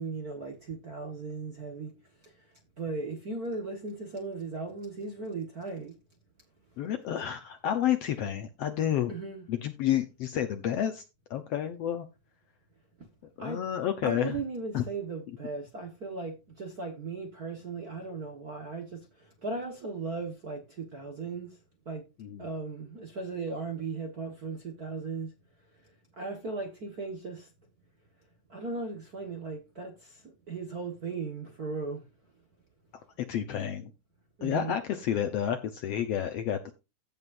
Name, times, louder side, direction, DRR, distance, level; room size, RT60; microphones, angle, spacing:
voice 1, 0.0-1.9 2.8-5.9 9.1-9.5 13.4-13.7 14.0-21.5 21.8-22.0 22.4-25.3 26.2-27.5 28.5-32.0 34.4-34.7, right 3 dB, 45° right, 1.2 m, -37 dB
voice 2, 6.8-9.1 9.5-11.0 11.3-12.1 13.4-14.4 14.7-14.8 22.2-22.5 33.2-33.9 34.4-36.7, left 10 dB, 70° left, 1.6 m, -30 dB
15.5 x 5.4 x 2.6 m
omnidirectional pair, 3.6 m